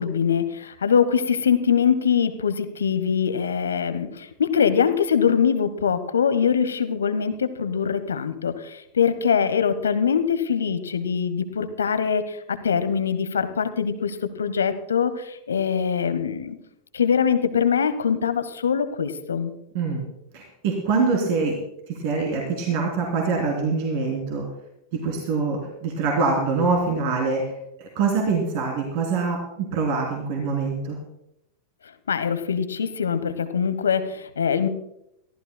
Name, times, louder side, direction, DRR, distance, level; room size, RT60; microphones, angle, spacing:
voice 1, 0.0-16.6 16.9-19.5 32.1-34.7, left 7 dB, 70° left, 12 dB, 1.0 m, -23 dB
voice 2, 19.7-20.1 20.3-21.6 21.9-24.4 25.0-27.5 27.8-31.0, right 4 dB, 50° right, 0 dB, 3.2 m, -24 dB
23.5 x 15.0 x 2.2 m, 0.81 s
figure-of-eight pair, 90°, 0 cm